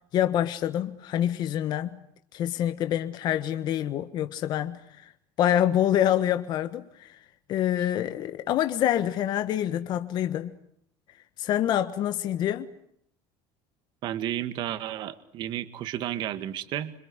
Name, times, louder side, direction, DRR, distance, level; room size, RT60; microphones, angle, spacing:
voice 1, 0.1-2.0 2.3-5.1 5.4-7.2 7.5-10.5 11.4-12.7, left 11 dB, 40° left, 1.4 m, -26 dB
voice 2, 14.0-16.9, right 12 dB, 45° right, 1.9 m, -32 dB
27.5 x 26.0 x 8.1 m
cardioid pair, 160°, 11 cm